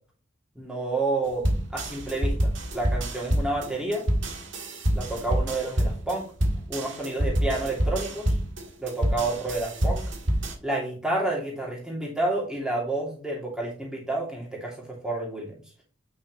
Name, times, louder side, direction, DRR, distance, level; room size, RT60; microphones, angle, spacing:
voice 1, 0.5-4.1 4.9-6.3 6.7-8.3 8.8-10.0 10.6-15.6, right 2 dB, 5° right, -3 dB, 2.7 m, -30 dB
sound 1, 1.4-10.5, equal, 60° right, 1.8 m, -27 dB
8.8 x 6.1 x 3.2 m, 0.40 s
head